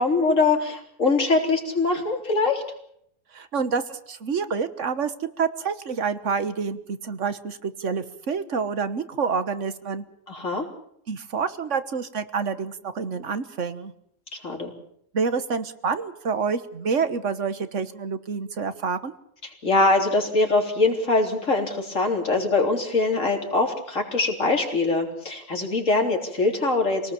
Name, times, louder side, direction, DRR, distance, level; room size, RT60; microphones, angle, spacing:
voice 1, 0.0-2.6 10.3-10.6 14.4-14.7 19.4-27.1, left 3 dB, 80° left, 2 dB, 4.0 m, -23 dB
voice 2, 3.3-10.0 11.1-13.9 15.1-19.1, right 5 dB, 70° right, 12 dB, 1.6 m, -28 dB
25.5 x 18.5 x 7.2 m, 0.70 s
omnidirectional pair, 1.3 m